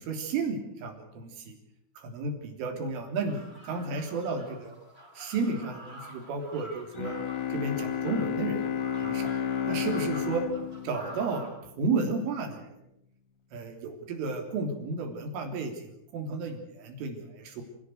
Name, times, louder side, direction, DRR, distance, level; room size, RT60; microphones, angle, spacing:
voice 1, 0.0-1.6 2.0-4.7 5.2-7.2 7.5-8.6 9.0-9.3 9.7-10.5 10.8-11.5 11.8-12.8 13.5-17.6, right 4 dB, 80° right, 4 dB, 5.8 m, -32 dB
sound 1, 3.2-11.5, right 1 dB, 10° right, 5.2 m, -48 dB
Bowed string instrument, 7.0-11.9, left 8 dB, 65° left, 2.4 m, -32 dB
28.5 x 16.5 x 8.0 m, 0.79 s
omnidirectional pair, 5.6 m